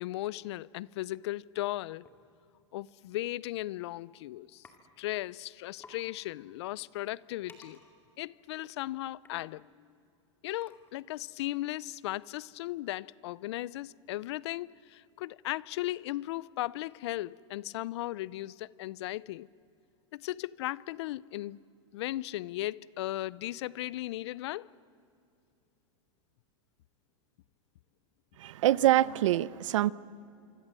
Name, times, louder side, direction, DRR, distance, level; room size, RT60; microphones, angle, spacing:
voice 1, 0.0-2.1 2.7-4.7 5.0-7.8 8.2-9.9 10.4-19.5 20.1-21.6 21.9-24.7, left 16 dB, 60° left, 0.5 m, -36 dB
sound 1, 2.1-2.2 3.3-3.5 3.8-4.1 4.6-4.8 5.1-5.2 5.5-5.6 5.8-6.0 6.5-11.2, left 3 dB, 15° left, 2.2 m, -58 dB
voice 2, 28.4-29.9, right 14 dB, 80° right, 0.7 m, -25 dB
25.5 x 25.0 x 7.6 m
supercardioid pair, 160°, 16 cm